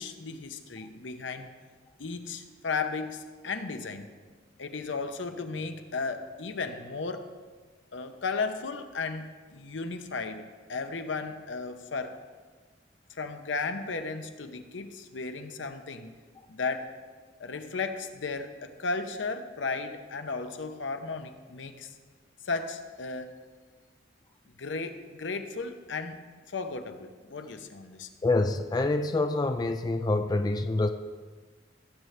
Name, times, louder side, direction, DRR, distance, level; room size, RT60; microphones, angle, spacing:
voice 1, 0.0-1.5 2.0-4.1 4.6-7.3 7.9-12.2 13.1-16.1 16.5-16.9 17.4-21.9 22.4-23.3 24.6-28.1, left 4 dB, 80° left, 8 dB, 0.8 m, -35 dB
voice 2, 28.2-30.9, left 2 dB, 20° left, 7 dB, 0.3 m, -26 dB
17.0 x 7.9 x 3.3 m, 1.4 s
head